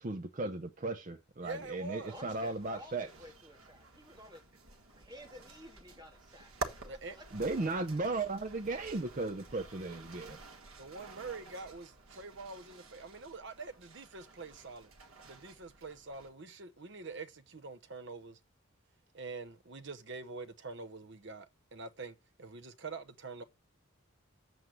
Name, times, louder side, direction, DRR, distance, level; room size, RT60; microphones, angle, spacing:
voice 1, 0.0-3.1 7.3-10.4, right 2 dB, 40° right, 0.6 m, -36 dB
voice 2, 1.4-2.2 6.9-7.2 10.8-14.9 15.2-18.4 19.1-23.4, right 3 dB, 60° right, 1.0 m, -45 dB
sound 1, 1.4-16.3, right 2 dB, 90° right, 1.4 m, -50 dB
voice 3, 2.1-4.4 4.7-7.2, equal, 20° right, 2.3 m, -53 dB
7.8 x 7.4 x 6.5 m
head